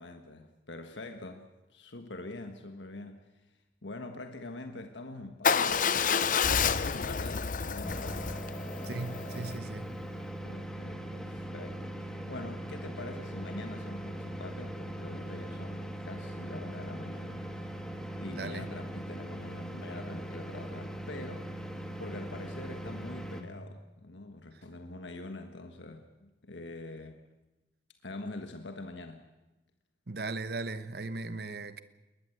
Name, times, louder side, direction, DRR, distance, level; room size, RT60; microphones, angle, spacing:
voice 1, 0.0-6.0 6.8-8.3 10.4-17.5 18.1-21.5 22.0-27.2 28.0-29.2 31.3-31.4, left 2 dB, 90° left, 1.5 m, -44 dB
Motorcycle / Engine starting / Idling, 5.4-9.5, left 6 dB, 45° left, 0.7 m, -29 dB
sound 1, 7.8-23.4, right 1 dB, 5° left, 1.8 m, -40 dB
voice 2, 8.8-10.0 18.3-18.7 24.5-24.6 30.1-31.8, right 3 dB, 60° right, 1.1 m, -38 dB
21.5 x 20.0 x 7.9 m
head